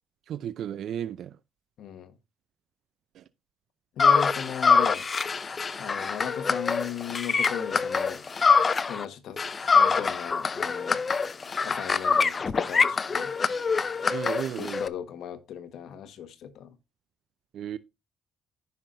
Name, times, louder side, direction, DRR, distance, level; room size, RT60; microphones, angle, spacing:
voice 1, 0.3-1.3 3.2-3.3 14.1-14.8 17.5-17.8, right 10 dB, 70° right, 0.5 m, -34 dB
voice 2, 1.8-2.1 4.0-5.1 5.8-8.2 8.9-9.4 9.7-11.0 11.6-13.3 14.6-16.7, left 9 dB, 75° left, 1.3 m, -37 dB
sound 1, 4.0-9.1 9.4-14.9, left 5 dB, 35° left, 0.6 m, -24 dB
15.0 x 5.8 x 2.6 m
cardioid pair, 90°, 0 cm